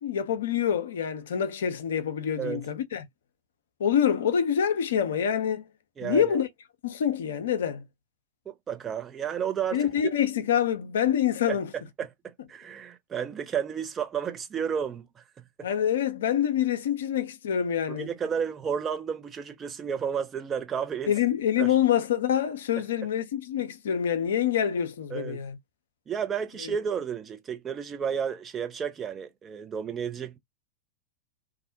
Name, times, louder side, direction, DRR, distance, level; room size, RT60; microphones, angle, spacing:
voice 1, 0.0-3.0 3.8-5.7 6.0-6.5 6.8-7.8 9.7-11.7 15.6-18.1 21.1-25.6 26.6-26.7, left 9 dB, 60° left, 0.5 m, -26 dB
voice 2, 6.0-6.4 8.5-10.1 11.5-11.6 12.0-15.2 17.9-21.1 21.6-21.8 25.1-25.4 26.1-30.4, right 7 dB, 20° right, 0.5 m, -32 dB
2.4 x 2.0 x 2.6 m
figure-of-eight pair, 90°, 0 cm